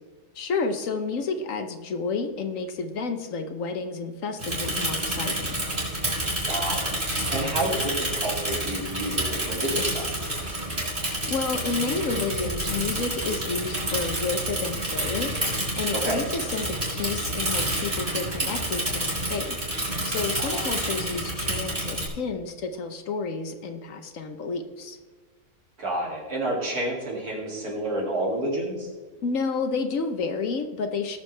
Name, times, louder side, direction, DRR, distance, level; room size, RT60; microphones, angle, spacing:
voice 1, 0.3-5.3 11.3-15.3 15.7-19.7 20.0-25.0 29.2-31.2, left 4 dB, 60° left, 7 dB, 1.2 m, -30 dB
Bicycle / Mechanisms, 4.4-22.1, right 1 dB, 35° right, 4.2 m, -29 dB
voice 2, 6.4-10.6 15.9-16.2 20.4-20.7 25.8-28.9, right 1 dB, 75° right, -3 dB, 3.1 m, -30 dB
19.0 x 6.9 x 3.3 m, 1.4 s
omnidirectional pair, 1.6 m